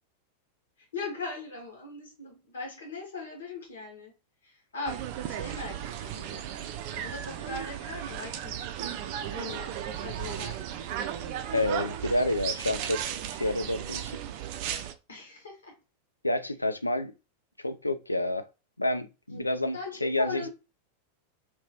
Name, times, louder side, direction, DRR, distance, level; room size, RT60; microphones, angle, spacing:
voice 1, 0.8-4.1 4.4-6.4 6.8-9.0 9.3-10.6 15.1-15.8 19.3-20.5, left 3 dB, 65° left, 1.4 m, -40 dB
sound 1, 4.9-14.9, right 10 dB, 45° right, 0.4 m, -35 dB
voice 2, 11.5-13.0 13.4-14.2 16.2-17.1 17.6-18.5 18.8-20.5, left 1 dB, 85° left, 0.3 m, -29 dB
3.0 x 2.9 x 2.8 m
figure-of-eight pair, 90°, 0 cm